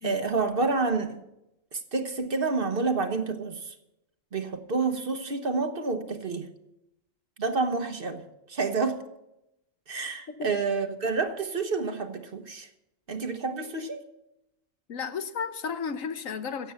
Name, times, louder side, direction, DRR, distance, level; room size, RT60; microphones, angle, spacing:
voice 1, 0.0-1.2 1.7-3.7 4.3-6.5 7.4-8.2 8.5-9.0 9.9-12.7 13.1-14.0, right 4 dB, 45° right, 1.3 m, -29 dB
voice 2, 14.9-16.7, left 6 dB, 85° left, 1.4 m, -33 dB
16.0 x 8.2 x 7.1 m
omnidirectional pair, 1.3 m